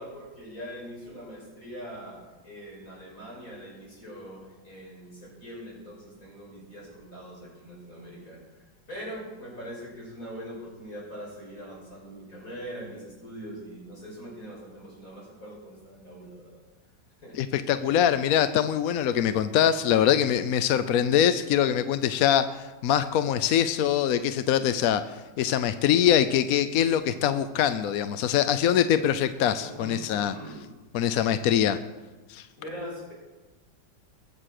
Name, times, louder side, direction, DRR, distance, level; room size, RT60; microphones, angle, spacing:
voice 1, 0.0-16.6 17.2-17.4 17.8-18.0 23.6-23.7 29.6-30.6 32.6-33.1, equal, 45° left, -4 dB, 6.7 m, -42 dB
voice 2, 17.4-30.3 30.9-31.8 32.3-32.5, left 9 dB, 65° left, 11 dB, 0.9 m, -23 dB
22.0 x 7.6 x 6.5 m, 1.2 s
omnidirectional pair, 2.0 m